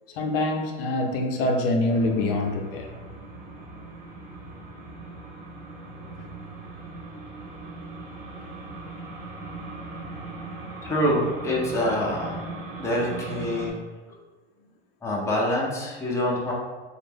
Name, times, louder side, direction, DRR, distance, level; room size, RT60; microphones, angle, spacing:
voice 1, 0.1-3.0, left 2 dB, 75° left, 3 dB, 0.5 m, -25 dB
sound 1, 1.9-13.7, right 3 dB, 5° right, 0.9 m, -39 dB
voice 2, 10.8-12.4 12.8-13.7 15.0-16.5, left 1 dB, 10° left, -3 dB, 0.6 m, -25 dB
2.5 x 2.0 x 3.4 m, 1.3 s
supercardioid pair, 115°, 29 cm